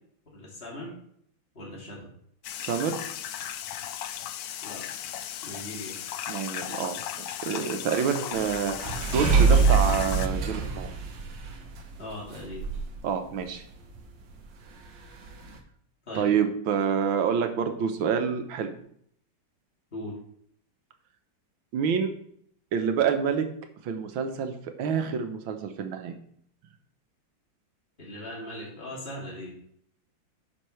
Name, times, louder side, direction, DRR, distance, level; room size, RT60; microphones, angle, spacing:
voice 1, 0.3-0.9 1.5-2.0 4.6-4.9 5.4-6.0 12.0-12.7 16.1-16.3 19.9-20.1 28.0-29.5, left 1 dB, 30° left, -5 dB, 2.8 m, -39 dB
sound 1, 2.4-10.3, left 10 dB, 75° left, 0.8 m, -36 dB
voice 2, 2.6-3.0 6.3-10.9 13.0-13.6 16.2-18.7 21.7-22.1 22.7-23.5 23.8-24.5 24.8-26.1, right 7 dB, 90° right, 7 dB, 1.7 m, -27 dB
sound 2, 8.3-13.0 13.4-13.5 13.7-14.0 14.3-14.4 15.3-15.6, right 5 dB, 65° right, 1.7 m, -25 dB
10.0 x 6.4 x 3.2 m, 0.66 s
omnidirectional pair, 2.2 m